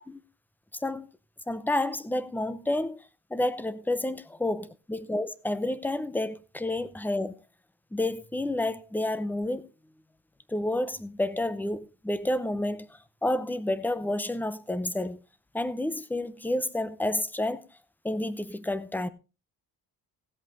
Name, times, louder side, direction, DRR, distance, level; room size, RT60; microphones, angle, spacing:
voice 1, 1.5-3.0 3.3-7.3 7.9-9.7 10.5-12.9 13.2-15.2 15.5-17.6 18.0-19.1, left 1 dB, 5° left, 0.6 m, -30 dB
16.5 x 8.0 x 3.8 m
cardioid pair, 165°, 40 cm